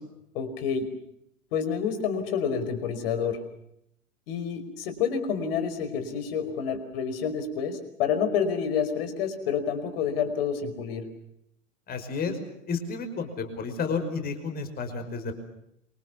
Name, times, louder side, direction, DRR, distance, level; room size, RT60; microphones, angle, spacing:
voice 1, 0.3-0.9 1.5-3.4 4.3-11.1, left 7 dB, 50° left, 10 dB, 5.2 m, -28 dB
voice 2, 11.9-12.4 12.7-15.3, left 5 dB, 25° left, 7 dB, 5.3 m, -31 dB
28.0 x 25.0 x 7.1 m, 0.76 s
figure-of-eight pair, 100°, 39 cm